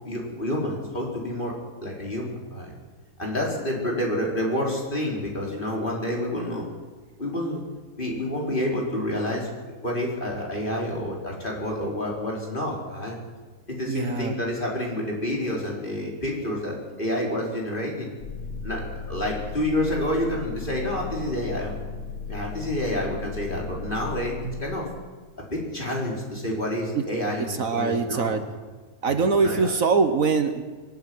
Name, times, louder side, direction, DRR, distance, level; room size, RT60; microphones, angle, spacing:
voice 1, 0.0-1.5 1.8-2.7 3.2-6.6 7.2-7.6 8.0-9.5 9.8-13.2 13.7-18.1 18.6-21.7 22.3-24.9 25.4-28.4 29.2-29.7, left 1 dB, 35° left, -2 dB, 4.7 m, -28 dB
voice 2, 13.9-14.3 24.4-24.6 26.9-27.0 27.4-28.4 29.0-30.6, right 5 dB, 65° right, 8 dB, 1.5 m, -23 dB
sound 1, 18.2-24.6, left 5 dB, 70° left, 2.7 m, -36 dB
22.0 x 12.5 x 9.5 m, 1.4 s
omnidirectional pair, 1.6 m